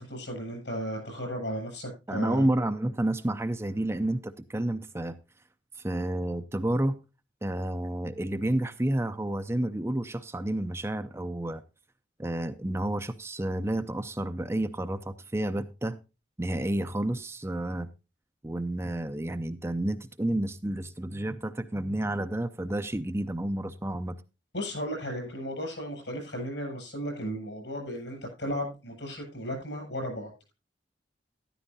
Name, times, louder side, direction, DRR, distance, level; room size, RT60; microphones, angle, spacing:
voice 1, 0.0-2.5 24.5-30.5, equal, 75° left, 7.3 m, -35 dB
voice 2, 2.1-5.2 5.8-7.0 7.4-11.6 12.2-16.0 16.4-17.9 18.4-24.2, right 1 dB, 15° right, 0.5 m, -30 dB
13.0 x 12.0 x 2.7 m
head